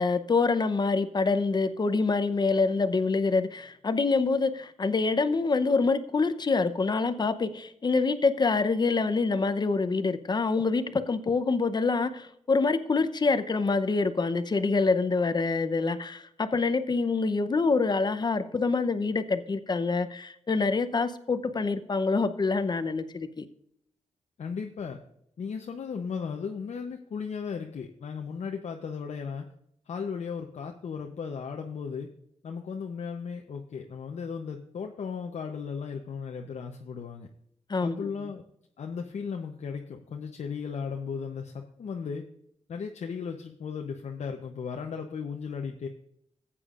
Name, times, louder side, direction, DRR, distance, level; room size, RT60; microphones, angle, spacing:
voice 1, 0.0-23.4 37.7-38.1, left 4 dB, 35° left, 0.7 m, -26 dB
voice 2, 24.4-25.0 25.4-29.5 29.9-32.1 32.4-37.3 37.8-38.4 38.8-42.3 42.7-45.9, left 6 dB, 65° left, 0.8 m, -36 dB
15.0 x 8.5 x 2.5 m
wide cardioid pair, 95°, 12 cm